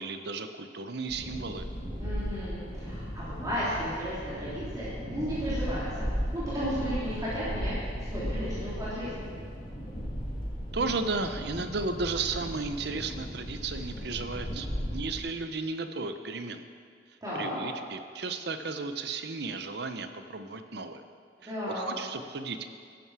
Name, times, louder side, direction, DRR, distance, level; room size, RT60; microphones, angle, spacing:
voice 1, 0.0-1.7 10.7-16.6 17.3-21.0 21.4-22.7, right 3 dB, 65° right, 9 dB, 0.8 m, -34 dB
sound 1, 1.1-15.2, equal, 25° left, 2.4 m, -36 dB
voice 2, 1.9-5.8 6.3-9.2 17.2-17.6 21.4-22.0, equal, 20° right, -11 dB, 3.2 m, -34 dB
13.5 x 11.5 x 4.9 m, 2.2 s
head